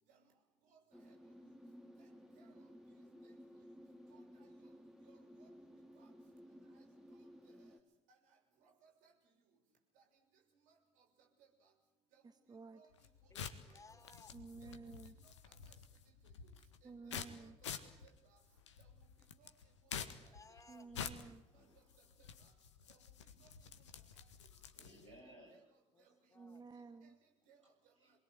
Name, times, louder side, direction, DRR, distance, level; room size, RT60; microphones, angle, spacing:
voice 1, 0.7-1.1 2.0-2.1 2.3-2.5 3.2-3.3 4.1-4.5 5.0-5.5 5.9-6.1 7.6-7.7 8.6-9.1 12.1-12.2 12.7-12.9 13.7-13.8 14.6-14.7 15.5-15.7 16.8-17.1 17.4-17.7 18.2-18.4 19.4-19.5 20.2-20.4 21.5-21.6 22.2-22.5 22.9-23.5 25.0-25.1 25.5-25.6 27.0-27.1 27.5-27.6, right 6 dB, 60° right, 2 dB, 6.7 m, -68 dB
sound 1, 0.9-7.8, equal, 5° right, 3.9 m, -57 dB
voice 2, 12.2-12.8 14.3-15.2 16.8-17.6 20.7-21.4 26.3-27.2, right 4 dB, 25° right, 10 dB, 1.6 m, -53 dB
sound 2, 12.9-25.2, left 7 dB, 75° left, 1.7 m, -50 dB
voice 3, 13.3-14.4 19.9-21.0 25.9-26.1 26.3-26.6, left 3 dB, 20° left, 7 dB, 3.8 m, -61 dB
voice 4, 21.4-22.1 24.5-25.7 27.6-28.1, equal, 85° right, -3 dB, 7.3 m, -62 dB
28.0 x 21.5 x 8.3 m, 0.87 s
figure-of-eight pair, 50°, 15 cm